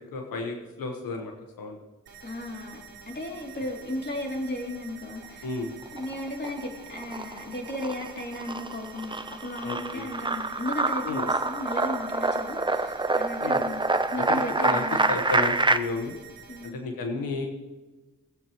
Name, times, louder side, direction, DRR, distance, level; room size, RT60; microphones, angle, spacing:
voice 1, 0.1-1.3 1.6-1.8 5.4-5.7 9.6-10.1 11.0-11.2 13.4-13.6 14.2-16.1 16.6-17.5, left 3 dB, 80° left, 3 dB, 1.3 m, -32 dB
sound 1, 2.1-16.7, right 7 dB, 85° right, 2.1 m, -48 dB
voice 2, 2.2-2.8 3.1-5.5 5.9-15.1 16.5-16.8, left 1 dB, 30° left, 0 dB, 2.9 m, -35 dB
sound 2, 5.8-6.6 7.0-15.8, right 2 dB, 15° right, 0.7 m, -26 dB
18.0 x 8.4 x 3.0 m, 1.2 s
cardioid pair, 55°, 34 cm